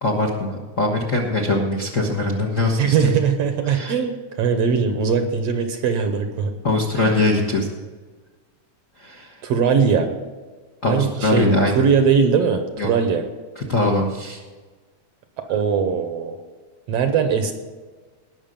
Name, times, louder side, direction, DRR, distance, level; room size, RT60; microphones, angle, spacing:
voice 1, 0.0-3.1 3.7-3.9 6.6-7.7 9.0-9.4 10.8-11.7 12.8-12.9 13.5-14.4, left 2 dB, 55° left, 0 dB, 0.8 m, -22 dB
voice 2, 2.8-6.5 7.0-7.1 9.4-10.1 10.9-11.5 11.8-13.2 15.4-16.4 16.9-17.5, right 6 dB, 70° right, 7 dB, 1.8 m, -20 dB
18.5 x 6.4 x 5.3 m, 1.4 s
omnidirectional pair, 3.4 m